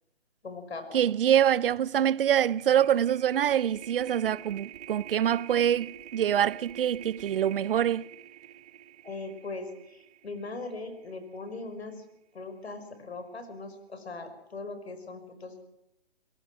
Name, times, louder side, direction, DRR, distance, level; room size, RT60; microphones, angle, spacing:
voice 1, 0.4-1.0 9.0-12.0 12.3-15.6, left 3 dB, 80° left, 5.4 m, -40 dB
sound 1, 0.8-0.9 1.2-11.5, right 12 dB, 40° right, 1.3 m, -48 dB
voice 2, 0.9-8.1, right 10 dB, 60° right, 0.7 m, -25 dB
29.5 x 18.0 x 6.1 m
hypercardioid pair, 150°, 32 cm